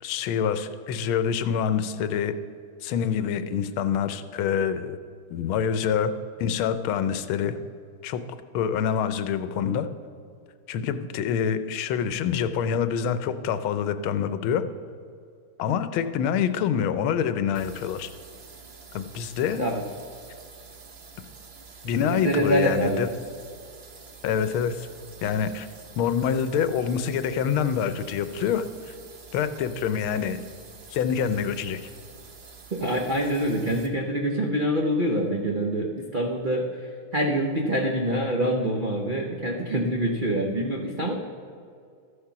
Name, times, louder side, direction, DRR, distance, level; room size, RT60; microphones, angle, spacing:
voice 1, 0.0-2.3 2.8-5.0 5.3-6.1 6.4-7.5 8.0-8.2 8.5-9.9 10.7-14.6 15.6-18.1 18.9-19.6 21.8-23.1 24.2-24.9 25.2-25.7 26.0-28.9 29.3-30.4 30.9-31.9, left 8 dB, 85° left, 11 dB, 1.5 m, -26 dB
sound 1, 17.5-33.9, right 5 dB, 45° right, 0.8 m, -47 dB
voice 2, 22.1-23.0 32.7-41.2, right 1 dB, 70° right, 0 dB, 0.4 m, -25 dB
13.0 x 6.7 x 5.8 m, 2.3 s
omnidirectional pair, 2.3 m